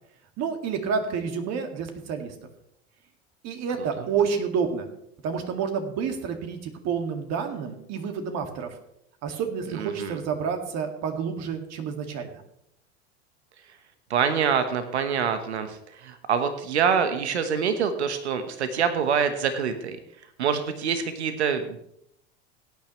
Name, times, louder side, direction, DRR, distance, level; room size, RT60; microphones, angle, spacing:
voice 1, 0.4-2.3 3.4-4.9 5.2-8.7 9.2-12.4, right 6 dB, 50° right, 5 dB, 2.2 m, -29 dB
voice 2, 9.7-10.2 14.1-20.0 20.4-21.8, right 7 dB, 90° right, 9 dB, 1.2 m, -25 dB
17.0 x 9.4 x 3.2 m, 0.74 s
hypercardioid pair, 85°, 33 cm